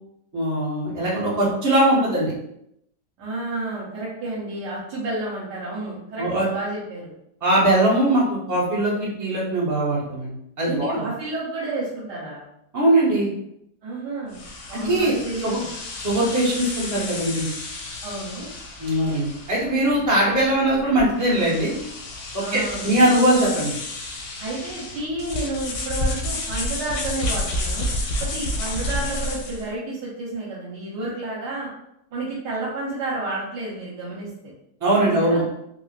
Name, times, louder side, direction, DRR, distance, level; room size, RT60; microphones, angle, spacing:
voice 1, 0.3-2.3 6.2-6.5 7.4-10.3 10.6-11.0 12.7-13.3 14.7-15.1 15.4-15.6 16.0-17.5 18.8-21.8 22.5-23.7 34.8-35.4, right 1 dB, 25° right, -6 dB, 0.4 m, -21 dB
voice 2, 3.2-7.1 10.7-12.4 13.8-14.4 14.7-15.7 18.0-18.5 22.4-23.0 24.4-31.7 32.1-34.3 35.0-35.4, right 2 dB, 80° right, -7 dB, 1.5 m, -31 dB
sound 1, 14.3-29.7, left 1 dB, 85° left, 1.2 m, -31 dB
4.2 x 2.1 x 2.4 m, 0.79 s
omnidirectional pair, 1.8 m